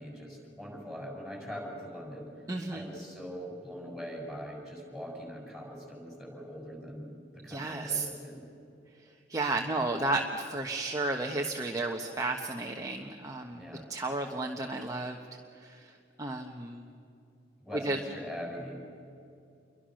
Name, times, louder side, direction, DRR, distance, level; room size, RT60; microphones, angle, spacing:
voice 1, 0.0-2.3 2.7-8.4 13.5-13.9 17.6-18.7, equal, ahead, -1 dB, 7.3 m, -42 dB
voice 2, 2.5-2.9 7.5-8.0 9.3-13.6 13.9-15.2 15.5-16.8 17.7-18.0, right 2 dB, 20° right, 1 dB, 1.2 m, -33 dB
29.0 x 23.5 x 6.5 m, 2.6 s
head